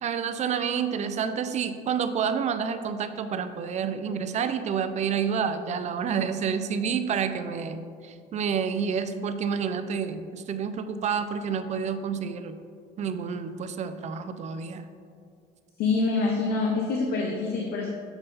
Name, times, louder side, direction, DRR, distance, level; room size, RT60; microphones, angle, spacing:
voice 1, 0.0-12.6 13.0-14.9, right 7 dB, 45° right, 10 dB, 0.4 m, -29 dB
voice 2, 15.8-17.9, left 3 dB, 70° left, 0 dB, 0.7 m, -26 dB
6.8 x 3.7 x 4.1 m, 2.3 s
cardioid pair, 110°, 17 cm